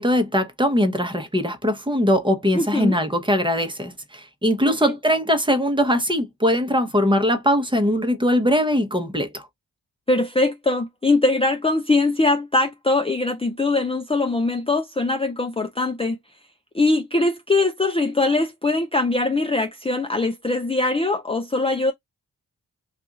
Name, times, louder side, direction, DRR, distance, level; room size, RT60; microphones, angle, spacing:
voice 1, 0.0-9.5, equal, 15° right, 0.9 m, -21 dB
voice 2, 2.5-3.0 4.7-5.0 10.1-16.2 16.7-21.9, left 2 dB, 15° left, 0.5 m, -22 dB
2.6 x 2.5 x 3.7 m
cardioid pair, 45°, 37 cm